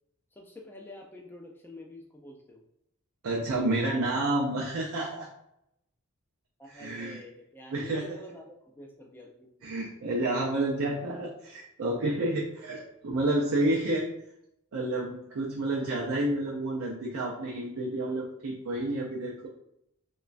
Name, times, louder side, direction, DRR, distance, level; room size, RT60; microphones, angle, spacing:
voice 1, 0.3-2.6 6.6-9.7 10.2-10.3, left 1 dB, 10° left, 0 dB, 0.3 m, -47 dB
voice 2, 3.2-5.3 6.7-7.2 7.7-8.0 9.6-14.1 14.7-19.5, right 1 dB, 65° right, -3 dB, 0.4 m, -30 dB
3.0 x 2.2 x 2.4 m, 0.80 s
head